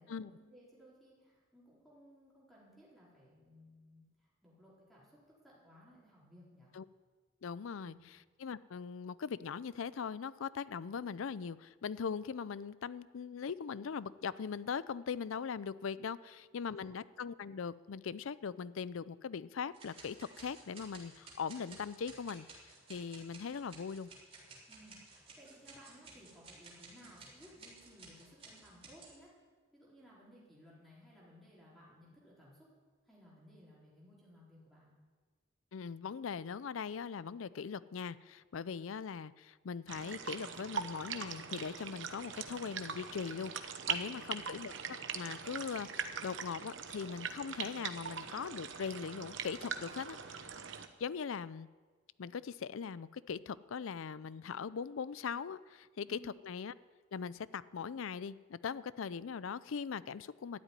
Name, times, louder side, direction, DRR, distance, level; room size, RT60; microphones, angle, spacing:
voice 1, 0.0-6.7 7.8-8.0 16.8-16.9 24.7-29.3 29.7-32.7 33.0-34.9 56.0-56.3, equal, ahead, -7 dB, 4.4 m, -59 dB
voice 2, 7.4-24.1 35.7-44.7 45.1-50.5 51.0-51.7 52.2-56.7 57.1-60.6, left 6 dB, 80° left, 18 dB, 0.5 m, -40 dB
sound 1, 19.7-29.2, right 3 dB, 30° right, 3.5 m, -55 dB
sound 2, 39.9-50.9, right 7 dB, 65° right, 0.9 m, -42 dB
13.0 x 8.2 x 9.8 m, 1.4 s
head